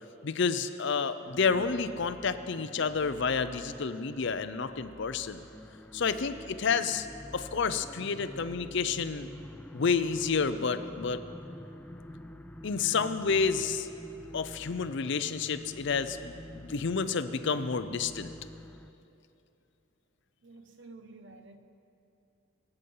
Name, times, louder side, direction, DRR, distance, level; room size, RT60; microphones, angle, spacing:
voice 1, 0.2-5.4 5.9-7.1 7.3-9.3 9.7-11.2 12.6-13.9 14.3-18.3, left 5 dB, 55° left, 0.5 m, -30 dB
sound 1, 1.3-18.9, left 1 dB, 5° left, 0.3 m, -47 dB
voice 2, 20.4-21.6, right 3 dB, 60° right, 0.9 m, -50 dB
23.5 x 8.1 x 5.5 m
head